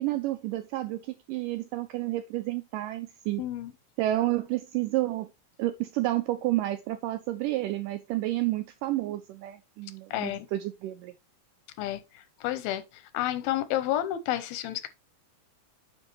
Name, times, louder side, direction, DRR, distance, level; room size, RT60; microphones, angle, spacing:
voice 1, 0.0-3.4 4.0-5.3 5.6-11.1, right 16 dB, 85° right, 1.9 m, -30 dB
voice 2, 3.4-3.7 10.1-10.5 11.8-12.8 13.1-14.9, left 13 dB, 90° left, 2.6 m, -30 dB
9.7 x 4.5 x 3.1 m
omnidirectional pair, 4.3 m